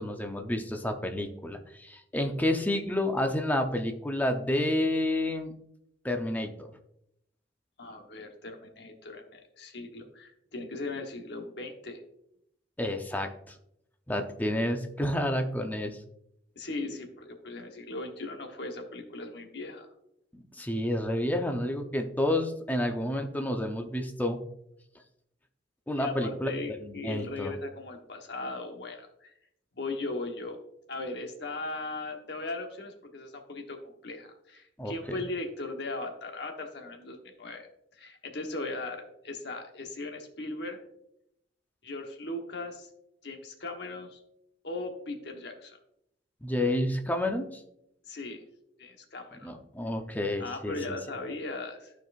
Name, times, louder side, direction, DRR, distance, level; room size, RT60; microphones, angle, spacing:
voice 1, 0.0-5.5 6.0-6.7 12.8-13.3 14.1-16.0 20.6-24.4 25.9-26.5 26.8-27.5 34.8-34.9 46.4-47.6 49.4-50.7, left 1 dB, 10° left, 5 dB, 0.7 m, -29 dB
voice 2, 7.8-12.0 16.6-19.9 26.0-29.3 29.8-30.6 30.9-33.8 34.0-40.8 41.8-42.9 43.2-44.2 44.6-45.8 48.1-48.4 48.8-49.5 50.4-51.9, left 2 dB, 65° left, 3 dB, 1.1 m, -38 dB
13.5 x 4.6 x 2.4 m, 0.79 s
head